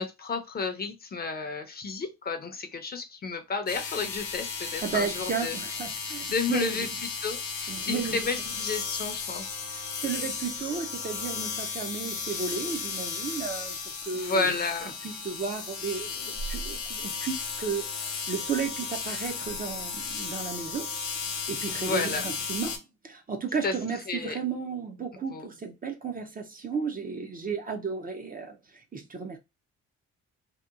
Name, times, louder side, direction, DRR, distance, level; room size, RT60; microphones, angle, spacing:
voice 1, 0.0-5.6 5.9-6.9 7.2-9.5 9.8-10.0 14.1-14.9 21.7-22.3 23.6-23.8 24.1-24.4 25.3-25.5, left 4 dB, 30° left, 0.5 m, -32 dB
sound 1, 3.7-22.8, left 5 dB, 75° left, 0.8 m, -35 dB
voice 2, 4.8-6.9 7.7-8.2 10.0-14.6 15.0-20.9 21.5-29.4, right 5 dB, 30° right, 0.5 m, -34 dB
2.8 x 2.2 x 2.4 m
cardioid pair, 90°, 30 cm